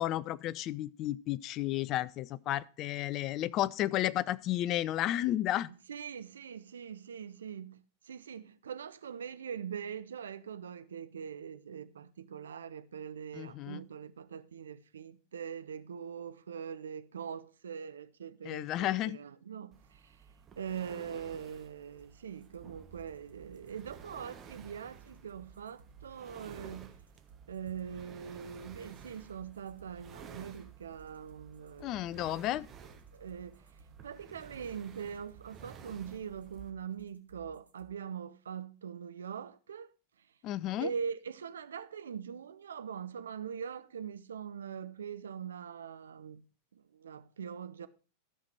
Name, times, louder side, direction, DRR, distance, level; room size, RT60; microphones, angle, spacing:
voice 1, 0.0-5.7 13.3-13.8 18.4-19.2 31.8-32.7 40.4-40.9, left 14 dB, 35° left, 0.4 m, -32 dB
voice 2, 5.9-20.2 20.6-26.9 27.5-32.6 33.1-33.6 34.0-39.9 40.8-46.4 46.7-47.9, right 7 dB, 65° right, 0.6 m, -42 dB
sound 1, 19.7-36.7, right 6 dB, 25° right, 1.2 m, -54 dB
sound 2, 21.9-37.9, right 6 dB, 80° right, 1.3 m, -59 dB
13.5 x 5.8 x 4.7 m
figure-of-eight pair, 90°, 0 cm